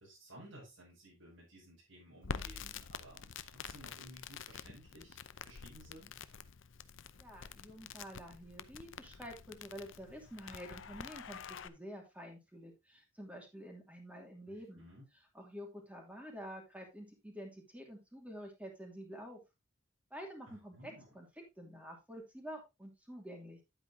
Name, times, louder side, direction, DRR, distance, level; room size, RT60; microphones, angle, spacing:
voice 1, 0.0-6.1 14.5-15.0 20.5-21.0, equal, 90° right, -7 dB, 6.6 m, -56 dB
Crackle, 2.2-11.7, left 6 dB, 70° left, 0.6 m, -47 dB
voice 2, 7.2-14.9 15.3-19.4 20.1-21.3 21.6-23.6, equal, 5° right, 1 dB, 2.7 m, -49 dB
10.0 x 8.8 x 2.7 m, 0.23 s
head